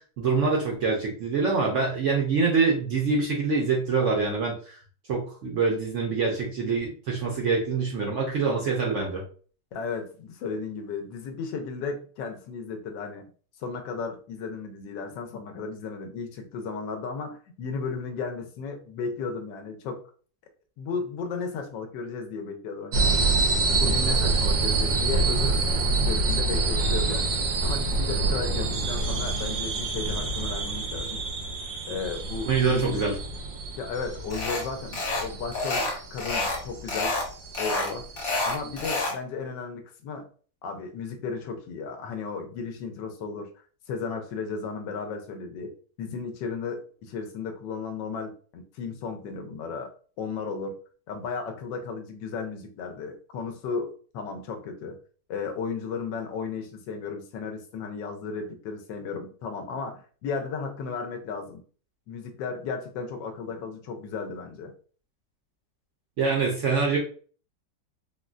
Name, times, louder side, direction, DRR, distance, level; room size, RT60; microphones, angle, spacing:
voice 1, 0.2-4.8 5.1-9.2 32.5-33.2 66.2-67.0, right 4 dB, 70° right, -1 dB, 0.7 m, -25 dB
voice 2, 9.7-13.3 13.6-20.0 20.8-23.5 23.8-25.6 26.0-27.4 27.6-31.2 31.9-33.0 33.8-37.2 37.6-38.1 38.4-40.3 40.6-43.5 43.9-49.9 50.2-50.7 51.1-55.0 55.3-61.6 62.1-64.7, left 5 dB, 80° left, 5 dB, 1.2 m, -34 dB
sound 1, 22.9-39.0, right 3 dB, 85° right, 1.4 m, -27 dB
sound 2, 34.3-34.6 34.9-35.3 35.5-36.6 36.9-37.3 37.5-39.2, left 2 dB, 55° left, 1.3 m, -28 dB
3.7 x 2.2 x 2.4 m, 0.41 s
omnidirectional pair, 2.0 m